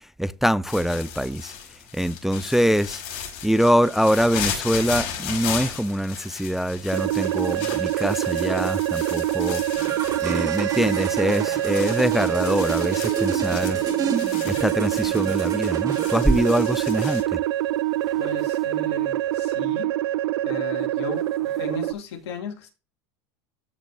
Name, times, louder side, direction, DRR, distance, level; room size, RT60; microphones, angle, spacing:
voice 1, 0.2-1.5 1.9-3.0 3.4-9.6 10.2-13.8 14.4-17.4, equal, ahead, 0.3 m, -23 dB
sound 1, 0.7-17.2, left 8 dB, 60° left, 5.3 m, -36 dB
sound 2, 6.9-21.9, right 14 dB, 85° right, 0.4 m, -25 dB
sound 3, 9.8-16.2, right 5 dB, 30° right, 2.2 m, -32 dB
voice 2, 18.2-19.9 20.4-22.7, left 5 dB, 85° left, 2.8 m, -36 dB
14.0 x 5.1 x 2.8 m
supercardioid pair, 115°, 13 cm